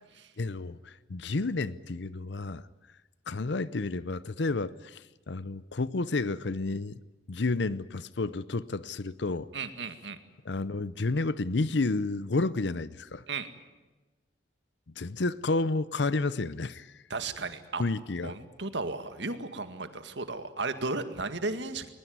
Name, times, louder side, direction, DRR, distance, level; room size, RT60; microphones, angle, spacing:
voice 1, 0.4-2.6 3.3-7.0 7.3-9.5 10.4-13.2 15.0-16.9 17.8-18.3, left 3 dB, 65° left, 0.7 m, -31 dB
voice 2, 9.5-10.2 13.3-13.5 17.1-17.8 18.2-21.9, right 3 dB, 70° right, 2.0 m, -34 dB
21.5 x 21.0 x 9.5 m
head